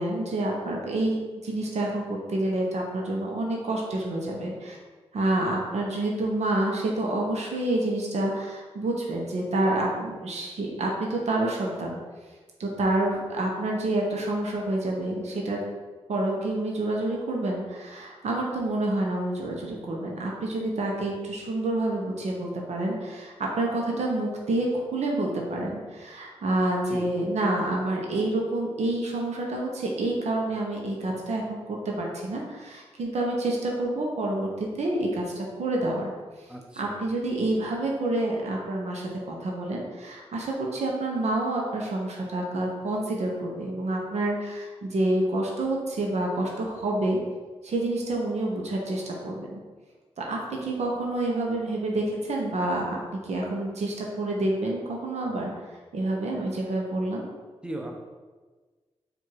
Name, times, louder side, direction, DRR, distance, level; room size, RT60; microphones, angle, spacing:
voice 1, 0.0-4.8 5.1-12.0 12.6-15.6 16.1-36.1 36.8-47.2 47.6-49.6 50.2-55.5 55.9-57.2, right 2 dB, 80° right, -1 dB, 0.8 m, -28 dB
voice 2, 36.5-37.0 57.6-57.9, right 1 dB, 10° right, 1 dB, 0.8 m, -37 dB
4.6 x 2.6 x 4.5 m, 1.4 s
cardioid pair, 55°, 11 cm